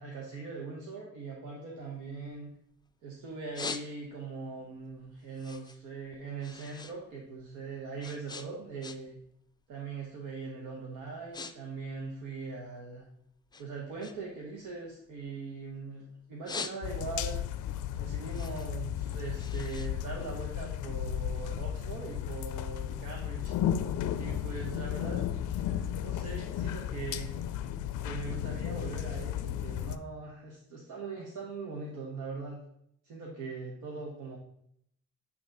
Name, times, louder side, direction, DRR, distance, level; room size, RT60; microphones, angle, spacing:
voice 1, 0.0-2.5 3.0-9.2 9.7-13.0 13.6-17.4 18.0-27.3 28.0-32.6 33.0-34.4, right 4 dB, 90° right, -2 dB, 1.0 m, -41 dB
sound 1, 1.8-2.9 3.3-4.3 4.8-7.0 7.2-9.3 9.6-9.9 10.5-10.7 11.0-11.5 11.8-13.0 13.5-15.8 16.2-17.3 17.7-20.8, left 4 dB, 15° left, 0.4 m, -43 dB
sound 2, 16.8-30.0, left 10 dB, 80° left, 0.5 m, -34 dB
8.4 x 3.0 x 3.9 m, 0.72 s
cardioid pair, 90°, 30 cm